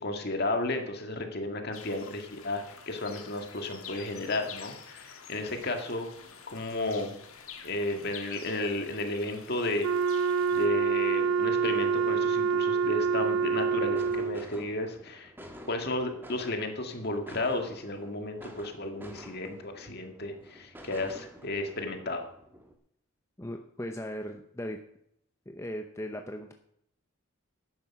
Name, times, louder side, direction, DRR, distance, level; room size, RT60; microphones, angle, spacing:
voice 1, 0.0-6.1 6.5-7.1 7.6-9.9 10.5-15.3 15.7-22.3, left 2 dB, 50° left, 5 dB, 2.0 m, -33 dB
sound 1, 1.7-10.7, left 7 dB, 80° left, 1.8 m, -48 dB
Wind instrument woodwind instrument, 9.8-14.5, right 6 dB, 75° right, 0.4 m, -26 dB
sound 2, 13.0-22.7, equal, 10° right, 1.5 m, -50 dB
voice 2, 23.4-24.8 25.5-26.5, equal, 15° left, 4 dB, 0.8 m, -38 dB
12.0 x 9.8 x 5.9 m, 0.71 s
head